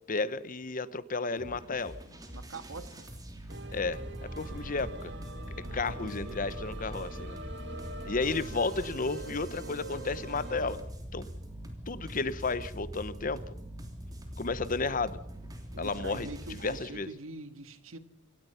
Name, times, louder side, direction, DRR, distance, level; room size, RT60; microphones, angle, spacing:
voice 1, 0.1-2.0 3.7-5.1 5.6-7.4 8.0-10.8 11.1-11.3 11.9-13.4 14.4-15.2 15.8-17.1, left 3 dB, 40° left, 16 dB, 0.9 m, -33 dB
sound 1, 1.4-16.8, equal, 20° right, 3.2 m, -43 dB
voice 2, 2.3-3.1 5.6-6.4 15.7-18.0, right 2 dB, 75° right, 10 dB, 1.7 m, -44 dB
sound 2, 3.5-10.8, right 1 dB, 60° right, 2.1 m, -43 dB
27.0 x 17.5 x 5.7 m, 0.78 s
head